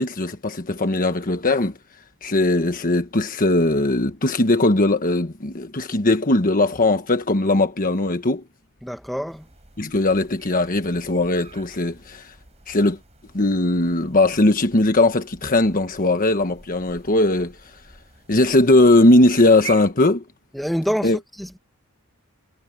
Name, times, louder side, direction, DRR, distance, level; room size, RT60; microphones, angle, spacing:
voice 1, 0.0-1.8 2.2-8.4 9.8-12.3 12.7-13.0 13.3-17.7 18.3-20.2 21.0-21.2, left 2 dB, 40° left, 1.3 m, -19 dB
voice 2, 8.8-9.5 20.5-21.6, equal, ahead, 2.0 m, -26 dB
sound 1, 9.3-19.9, right 4 dB, 30° right, 7.7 m, -45 dB
head